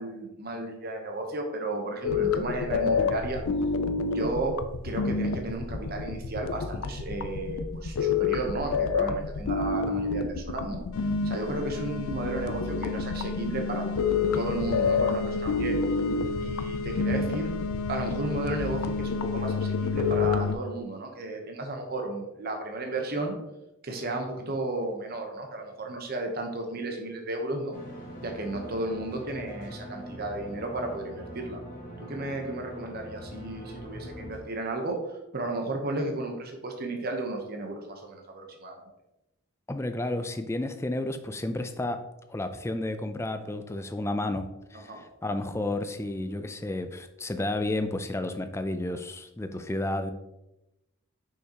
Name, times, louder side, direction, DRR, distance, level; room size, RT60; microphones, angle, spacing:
voice 1, 0.0-3.4 4.0-4.6 4.8-13.9 14.3-15.8 16.4-17.5 17.9-23.4 23.8-27.8 28.2-31.6 32.0-38.8 44.9-45.0, right 2 dB, 45° right, 3 dB, 0.9 m, -33 dB
sound 1, 2.0-20.6, left 4 dB, 80° left, 0.5 m, -28 dB
sound 2, 27.7-34.4, equal, 40° left, 1.5 m, -42 dB
voice 2, 39.7-42.0 42.3-50.1, left 2 dB, 15° left, 8 dB, 0.3 m, -31 dB
6.3 x 5.7 x 2.9 m, 0.93 s
head